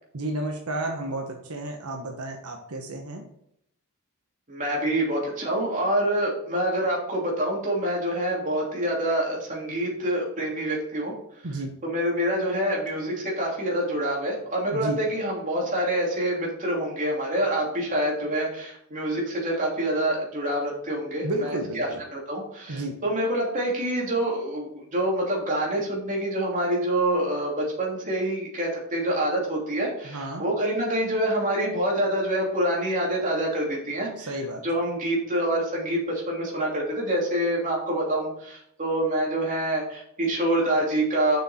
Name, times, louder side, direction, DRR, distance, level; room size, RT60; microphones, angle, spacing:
voice 1, 0.1-3.2 11.4-11.8 14.7-15.0 21.2-22.0 22.7-23.0 30.0-30.4 34.2-34.6, right 1 dB, 85° right, 2 dB, 1.1 m, -31 dB
voice 2, 4.5-11.1 11.8-34.3 34.6-41.4, right 1 dB, 35° right, -3 dB, 2.9 m, -26 dB
7.2 x 6.4 x 4.3 m, 0.72 s
head